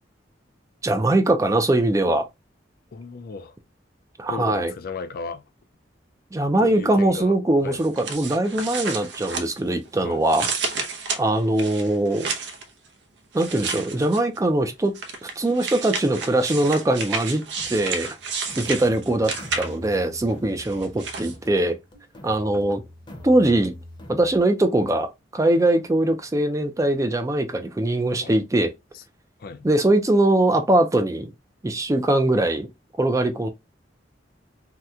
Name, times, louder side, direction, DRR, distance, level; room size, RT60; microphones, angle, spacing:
voice 1, 0.8-2.3 4.2-4.7 6.3-10.5 11.2-12.3 13.3-17.4 17.7-18.2 18.6-21.8 22.2-22.8 23.2-23.7 24.1-28.7 29.6-31.3 31.6-32.7 33.0-33.5, right 1 dB, 20° right, 0.4 m, -21 dB
voice 2, 2.9-3.6 4.3-5.4 6.6-7.4 7.6-7.8 10.0-10.2 28.2-28.4 29.4-29.7, left 4 dB, 55° left, 0.4 m, -35 dB
sound 1, 7.8-9.9 10.2-12.6 13.3-14.4 14.9-20.0 20.6-21.3, right 5 dB, 70° right, 0.7 m, -31 dB
sound 2, 17.6-24.4, left 1 dB, 25° left, 0.8 m, -44 dB
2.9 x 2.1 x 3.5 m
head